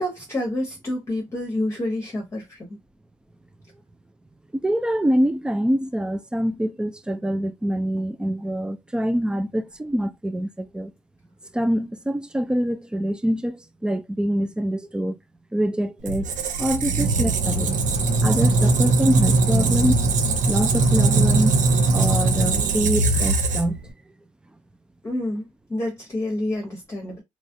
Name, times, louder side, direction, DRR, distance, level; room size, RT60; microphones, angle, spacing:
voice 1, 0.0-2.8 25.0-27.2, left 1 dB, 20° left, 0.9 m, -28 dB
voice 2, 4.5-10.9 11.5-15.2 15.5-16.3 16.6-17.8 18.2-20.0 20.5-21.5 21.9-23.8, equal, 5° right, 0.3 m, -25 dB
Squeak, 16.1-23.9, right 3 dB, 55° right, 0.7 m, -20 dB
3.1 x 2.3 x 2.7 m
cardioid pair, 105°, 16 cm